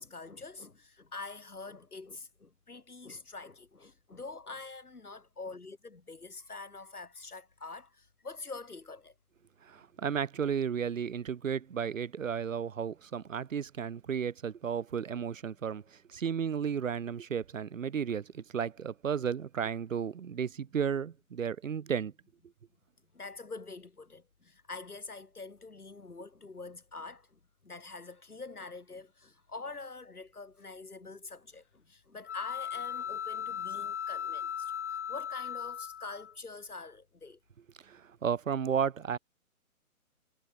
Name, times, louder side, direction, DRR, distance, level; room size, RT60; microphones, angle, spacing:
voice 1, 0.0-9.1 23.1-37.4, left 3 dB, 85° left, 7.4 m, -45 dB
voice 2, 9.7-15.8 16.1-22.1 37.9-39.2, right 7 dB, 60° right, 1.7 m, -33 dB
sound 1, 32.3-36.3, left 9 dB, 55° left, 1.0 m, -37 dB
figure-of-eight pair, 140°, 44 cm